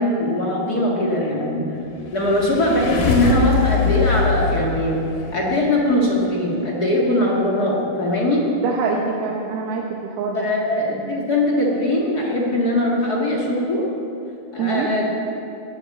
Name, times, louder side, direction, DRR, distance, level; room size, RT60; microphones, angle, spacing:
voice 1, 0.0-1.6 2.1-5.0 5.3-8.5 10.3-13.8 14.5-15.1, left 1 dB, 40° left, -4 dB, 1.5 m, -21 dB
sound 1, 2.0-5.6, left 4 dB, 85° left, 3.9 m, -22 dB
voice 2, 8.6-10.5 14.6-14.9, right 5 dB, 75° right, -1 dB, 2.9 m, -24 dB
18.5 x 8.7 x 7.4 m, 2.9 s
omnidirectional pair, 4.5 m